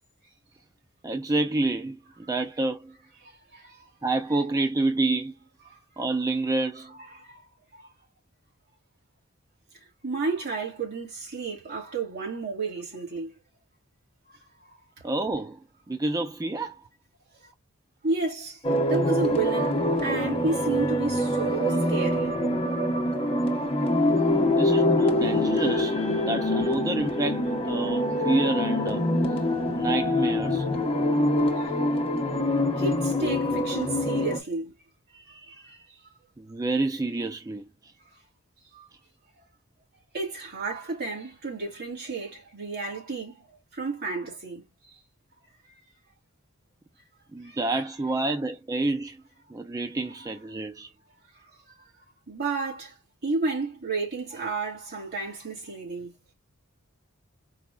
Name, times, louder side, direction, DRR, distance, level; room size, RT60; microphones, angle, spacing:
voice 1, 1.0-2.9 4.0-5.3 6.0-6.9 15.0-15.6 15.9-16.8 24.5-26.0 26.3-29.0 29.8-30.7 36.4-37.9 47.3-49.2 49.5-50.9, right 2 dB, 15° right, 0.4 m, -28 dB
voice 2, 3.2-3.8 5.7-5.8 7.1-7.4 7.7-7.9 10.0-13.3 14.7-14.8 17.4-17.5 18.0-18.6 18.9-22.4 31.4-31.6 32.8-34.7 35.1-35.8 38.7-38.9 40.1-43.5 43.7-44.6 47.4-47.6 51.8-51.9 52.3-53.0 53.2-56.1, right 3 dB, 50° right, 2.4 m, -32 dB
sound 1, 18.6-34.4, left 1 dB, 25° left, 1.1 m, -25 dB
4.8 x 2.8 x 2.3 m
head